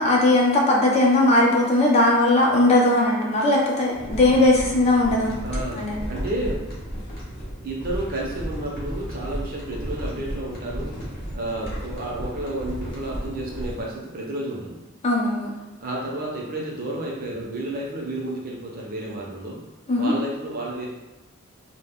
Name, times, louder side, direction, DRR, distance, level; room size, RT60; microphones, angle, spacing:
voice 1, 0.0-5.3 5.7-6.0 15.0-15.5 19.9-20.1, left 2 dB, 30° left, -3 dB, 0.5 m, -19 dB
sound 1, 3.9-13.8, equal, 45° left, 0.9 m, -33 dB
voice 2, 5.4-6.6 7.6-10.9 11.3-14.8 15.8-19.6 20.0-20.9, right 1 dB, 45° right, -3 dB, 0.6 m, -31 dB
2.1 x 2.1 x 3.5 m, 1.1 s
head